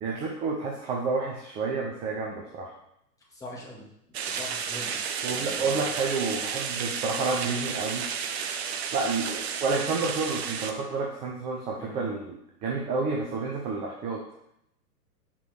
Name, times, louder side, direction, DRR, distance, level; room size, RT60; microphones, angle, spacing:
voice 1, 0.0-2.7 5.2-8.1 8.9-14.2, right 4 dB, 15° right, -1 dB, 0.5 m, -30 dB
voice 2, 3.3-3.8 4.2-5.0 5.2-5.9 11.8-12.1, left 2 dB, 5° left, -5 dB, 2.1 m, -43 dB
sound 1, 4.1-10.7, right 7 dB, 40° right, 0.8 m, -32 dB
5.9 x 4.8 x 6.2 m, 0.79 s
figure-of-eight pair, 110°, 48 cm